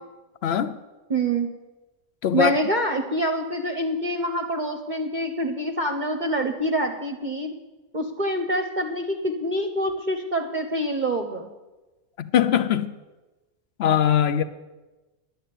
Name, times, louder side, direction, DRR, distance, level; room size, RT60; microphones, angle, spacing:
voice 1, 0.4-0.8 2.2-2.5 12.2-12.9 13.8-14.4, left 9 dB, 55° left, 0.8 m, -21 dB
voice 2, 1.1-1.5 2.3-7.5 7.9-11.5, right 1 dB, 40° right, 0.9 m, -26 dB
11.0 x 9.1 x 8.4 m
omnidirectional pair, 1.5 m